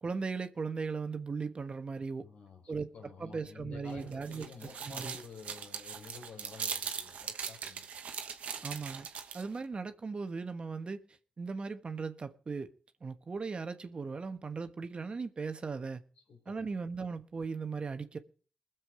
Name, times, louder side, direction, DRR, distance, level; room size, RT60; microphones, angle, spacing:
voice 1, 0.0-2.2 2.7-2.9 3.2-4.5 4.9-5.2 8.6-9.1 9.3-11.0 11.4-12.7 13.0-16.0 16.5-18.2, right 4 dB, 50° right, 1.3 m, -37 dB
voice 2, 2.2-7.9 16.3-16.7, left 5 dB, 80° left, 3.7 m, -50 dB
sound 1, 3.9-9.6, right 7 dB, 80° right, 1.1 m, -40 dB
20.5 x 7.5 x 4.8 m
supercardioid pair, 50°, 2 cm